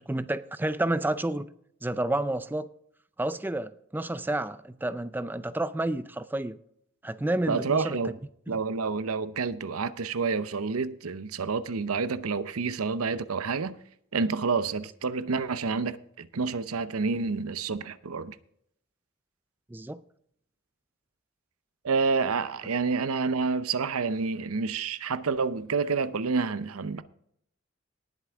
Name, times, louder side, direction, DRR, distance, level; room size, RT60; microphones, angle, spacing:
voice 1, 0.0-1.5 1.8-2.7 3.2-6.6 7.0-8.0 8.5-8.6 19.7-20.0, right 1 dB, 10° right, 0.4 m, -30 dB
voice 2, 7.5-8.2 8.5-13.8 14.1-18.4 21.8-27.0, right 4 dB, 90° right, 0.7 m, -29 dB
18.5 x 7.9 x 3.6 m
head